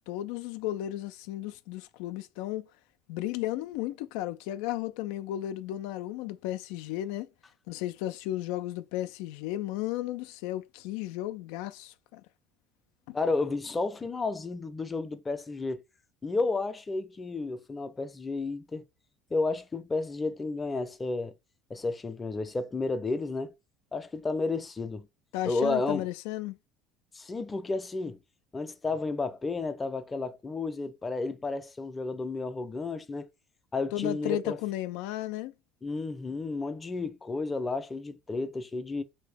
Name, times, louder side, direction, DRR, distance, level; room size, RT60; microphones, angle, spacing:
voice 1, 0.1-2.7 3.1-7.3 7.7-12.2 13.1-13.2 25.3-26.6 33.9-35.5, left 14 dB, 80° left, 0.3 m, -34 dB
voice 2, 13.1-15.8 16.2-18.8 19.3-21.3 21.7-23.5 23.9-25.1 25.5-26.1 27.1-28.2 28.5-33.3 33.7-34.6 35.8-39.0, left 3 dB, 20° left, 0.5 m, -32 dB
3.0 x 2.8 x 3.4 m
supercardioid pair, 100°, 0 cm